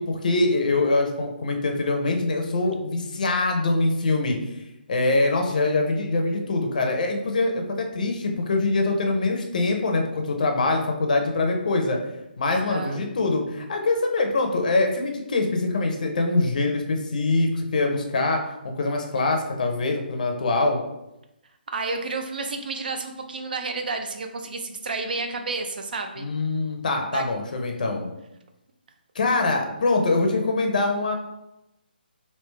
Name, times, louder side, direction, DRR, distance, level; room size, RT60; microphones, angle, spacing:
voice 1, 0.0-4.4 4.9-12.0 12.4-20.8 26.2-28.1 29.1-31.1, left 2 dB, 50° left, 4 dB, 0.5 m, -24 dB
voice 2, 12.5-13.0 21.7-26.3 27.1-27.2, right 3 dB, 60° right, 5 dB, 0.5 m, -31 dB
3.2 x 2.8 x 3.2 m, 0.91 s
hypercardioid pair, 170°, 6 cm